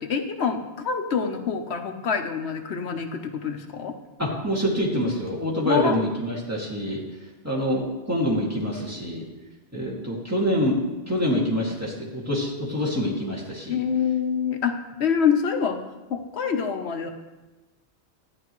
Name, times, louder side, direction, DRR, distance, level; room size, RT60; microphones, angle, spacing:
voice 1, 0.0-3.9 5.6-6.0 13.7-15.8 16.1-17.1, left 6 dB, 70° left, 5 dB, 1.2 m, -26 dB
voice 2, 4.2-7.0 7.4-9.2 9.7-10.8 11.1-13.8, equal, 15° right, -3 dB, 2.1 m, -26 dB
13.0 x 10.0 x 3.1 m, 1.1 s
omnidirectional pair, 1.1 m